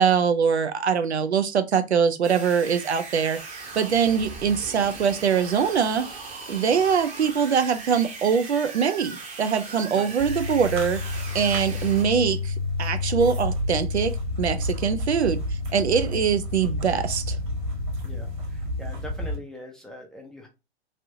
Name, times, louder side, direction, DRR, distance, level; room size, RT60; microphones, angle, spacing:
voice 1, 0.0-6.1 6.5-11.0 11.3-12.5 12.8-15.4 15.7-17.4, right 7 dB, 80° right, 0.5 m, -23 dB
sound 1, 2.2-12.0, right 3 dB, 20° right, 0.8 m, -39 dB
sound 2, 10.2-19.4, left 2 dB, 50° right, 1.5 m, -29 dB
voice 2, 18.0-20.5, left 1 dB, ahead, 0.5 m, -42 dB
3.3 x 2.6 x 2.7 m
figure-of-eight pair, 110°, 33 cm